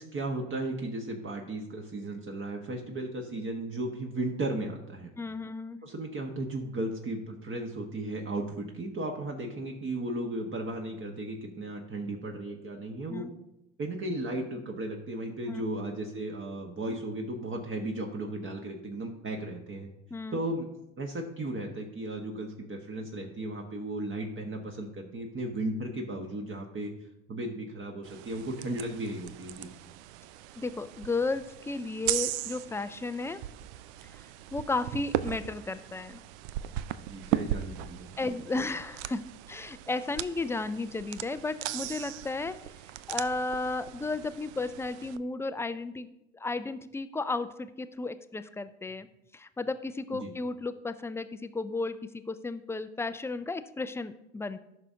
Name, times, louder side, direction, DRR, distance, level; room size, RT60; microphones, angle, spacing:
voice 1, 0.0-5.1 5.8-13.3 13.8-19.9 20.3-20.7 21.0-26.9 27.3-29.7 37.1-38.3 50.1-50.3, right 1 dB, 30° right, 2 dB, 1.4 m, -35 dB
voice 2, 5.2-5.8 13.1-13.3 15.5-15.7 20.1-20.4 30.6-33.4 34.0-34.2 34.5-36.2 38.2-39.2 39.5-42.5 43.1-46.1 46.3-49.1 49.3-54.6, left 3 dB, 5° left, 12 dB, 0.4 m, -34 dB
sound 1, 28.0-45.2, right 13 dB, 60° right, 0.5 m, -38 dB
14.5 x 6.1 x 2.8 m, 0.86 s
hypercardioid pair, 70°, 38 cm